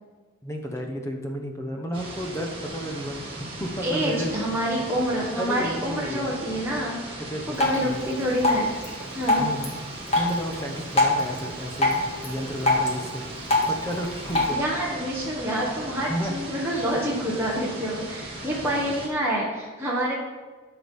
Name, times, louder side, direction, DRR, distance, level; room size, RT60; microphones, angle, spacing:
voice 1, 0.4-4.3 5.3-6.4 7.2-7.6 7.8-8.0 9.4-9.7 10.2-14.6 16.1-16.4 18.3-18.6, equal, 15° left, 2 dB, 1.0 m, -32 dB
sound 1, 1.9-19.1, right 1 dB, 25° right, 1.9 m, -38 dB
voice 2, 3.8-8.7 9.1-9.5 14.5-20.1, equal, 10° right, -6 dB, 1.3 m, -27 dB
Drip, 7.5-14.5, left 2 dB, 30° left, 1.8 m, -26 dB
12.5 x 4.9 x 5.4 m, 1.4 s
head